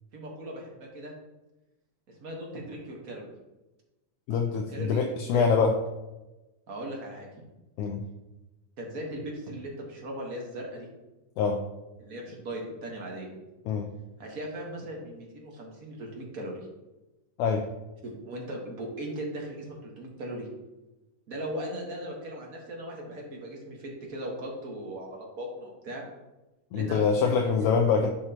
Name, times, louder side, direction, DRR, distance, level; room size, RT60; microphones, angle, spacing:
voice 1, 0.1-1.1 2.1-3.2 4.3-4.4 4.7-5.5 6.7-7.5 8.8-10.9 12.0-13.3 14.2-16.7 18.0-20.5 21.3-26.0 26.7-27.0 27.4-27.7, right 1 dB, 50° right, -1 dB, 1.0 m, -38 dB
voice 2, 4.3-5.8 7.8-8.0 11.4-11.6 13.7-13.9 17.4-17.7 26.7-28.1, left 5 dB, 80° left, 3 dB, 1.9 m, -24 dB
11.5 x 6.2 x 2.9 m, 1.0 s
omnidirectional pair, 3.8 m